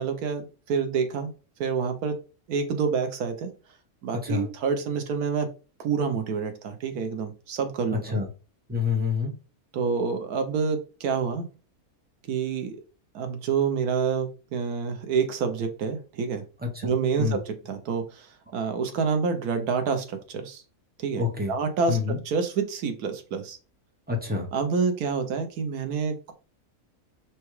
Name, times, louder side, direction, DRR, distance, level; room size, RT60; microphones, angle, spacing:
voice 1, 0.0-1.3 1.6-2.1 2.5-3.5 4.0-5.5 5.8-8.2 9.7-11.5 12.3-12.8 13.1-16.4 16.8-20.6 21.0-22.0 22.2-23.6 24.5-26.3, right 5 dB, 85° right, 6 dB, 1.3 m, -27 dB
voice 2, 8.7-9.3 16.6-16.9 17.2-17.4 21.2-21.5 21.9-22.2 24.1-24.5, left 5 dB, 10° right, 0 dB, 0.5 m, -27 dB
6.0 x 2.3 x 3.1 m, 0.33 s
omnidirectional pair, 1.6 m